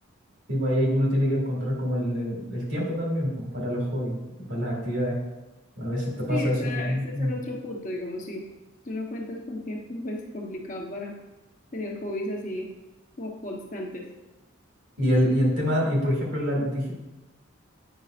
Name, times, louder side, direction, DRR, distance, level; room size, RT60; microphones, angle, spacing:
voice 1, 0.5-5.1 5.8-7.3 15.0-16.9, equal, 65° right, -2 dB, 2.3 m, -26 dB
voice 2, 6.3-8.4 8.8-11.1 11.7-12.7 13.2-14.0, left 1 dB, 40° left, -1 dB, 1.0 m, -34 dB
9.2 x 5.4 x 2.5 m, 1.1 s
head